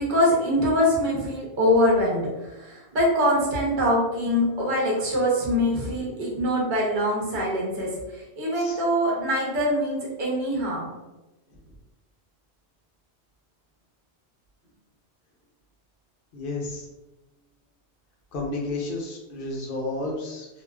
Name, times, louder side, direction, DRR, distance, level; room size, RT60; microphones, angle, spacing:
voice 1, 0.0-7.9 8.4-10.9, equal, 50° right, -4 dB, 0.9 m, -23 dB
voice 2, 16.3-16.9 18.3-20.5, left 2 dB, 60° left, -2 dB, 0.7 m, -32 dB
2.4 x 2.3 x 2.2 m, 1.0 s
omnidirectional pair, 1.1 m